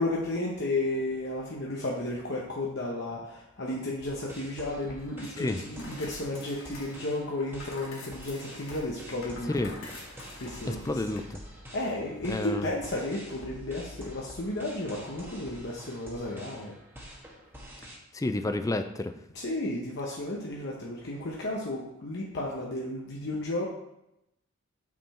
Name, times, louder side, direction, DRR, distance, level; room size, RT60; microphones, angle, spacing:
voice 1, 0.0-9.5 10.2-10.9 11.7-16.7 19.3-23.7, left 2 dB, 55° left, -2 dB, 0.9 m, -33 dB
sound 1, 4.0-18.0, equal, 10° right, 1.3 m, -48 dB
sound 2, 5.1-11.2, left 2 dB, 70° left, 1.9 m, -47 dB
voice 2, 10.7-11.4 12.3-12.7 18.1-19.1, left 2 dB, 15° left, 8 dB, 0.4 m, -30 dB
6.7 x 6.1 x 4.3 m, 0.85 s
head